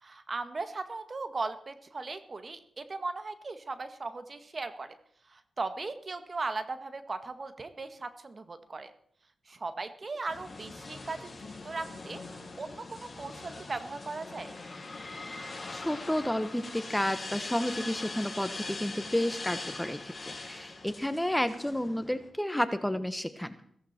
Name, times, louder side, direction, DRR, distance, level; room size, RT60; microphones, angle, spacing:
voice 1, 0.0-4.9 5.3-8.9 9.5-12.2 12.6-14.5, right 3 dB, 45° right, 9 dB, 1.9 m, -38 dB
sound 1, 10.3-22.3, left 3 dB, 40° left, 5.2 m, -42 dB
voice 2, 15.4-23.6, left 1 dB, 5° left, 11 dB, 1.3 m, -31 dB
16.0 x 15.0 x 4.5 m, 0.63 s
supercardioid pair, 50°, 0 cm